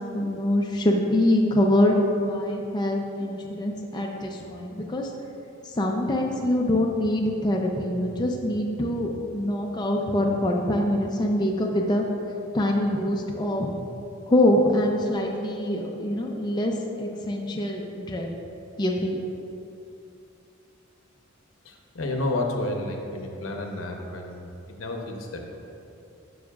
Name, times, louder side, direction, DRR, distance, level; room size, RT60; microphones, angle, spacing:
voice 1, 0.1-5.1 5.7-12.0 12.5-13.7 14.3-18.3 18.8-19.2, left 1 dB, 20° left, 0 dB, 0.4 m, -24 dB
voice 2, 21.6-25.6, left 2 dB, 90° left, 2 dB, 0.8 m, -31 dB
9.6 x 6.2 x 2.4 m, 2.7 s
head